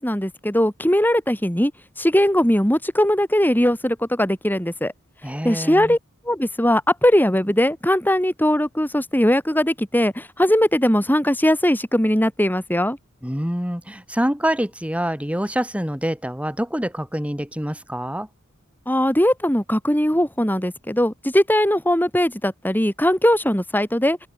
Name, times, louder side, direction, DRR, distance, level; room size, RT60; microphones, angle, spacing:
voice 1, 0.0-1.7 2.0-4.9 5.4-6.0 6.3-13.0 18.9-24.3, left 1 dB, 10° left, 6.5 m, -20 dB
voice 2, 5.2-6.0 13.2-18.3, equal, 5° right, 6.8 m, -26 dB
open air
head